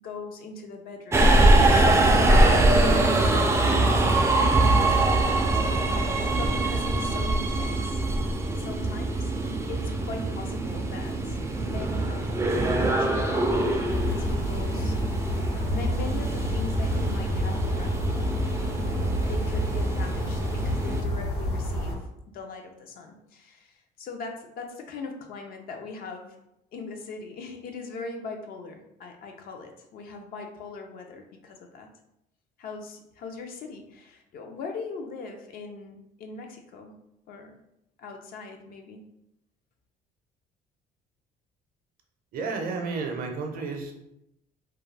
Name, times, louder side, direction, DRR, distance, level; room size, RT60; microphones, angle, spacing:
voice 1, 0.0-1.4 1.7-3.7 4.2-5.6 5.9-8.0 8.6-9.3 9.7-15.0 15.3-18.2 19.3-22.1 22.3-26.4 26.7-31.9 32.6-37.0 37.3-37.5 38.0-39.1, left 4 dB, 60° left, 4 dB, 0.5 m, -40 dB
Subway metro underground, 1.1-21.0, right 2 dB, 15° right, 0.3 m, -23 dB
sound 1, 13.9-21.9, left 1 dB, 80° left, 0.9 m, -29 dB
voice 2, 42.3-43.9, right 4 dB, 60° right, 3 dB, 0.6 m, -31 dB
2.3 x 2.2 x 3.2 m, 0.82 s
cardioid pair, 110°, 17 cm